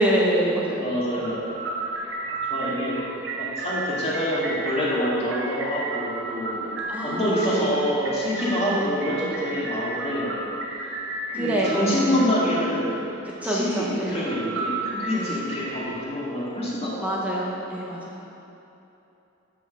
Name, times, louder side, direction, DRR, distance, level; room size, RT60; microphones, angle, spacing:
voice 1, 0.0-1.3 6.9-7.7 8.6-9.0 11.3-12.2 13.4-14.2 15.1-15.4 17.0-18.2, right 1 dB, 5° right, -4 dB, 0.9 m, -26 dB
voice 2, 0.8-1.5 2.2-3.0 3.4-6.8 7.0-10.4 10.7-11.0 11.3-13.0 13.4-17.1, equal, 30° left, -7 dB, 2.1 m, -26 dB
sound 1, 1.1-16.0, right 2 dB, 65° right, 0.9 m, -33 dB
7.2 x 6.3 x 6.6 m, 2.9 s
head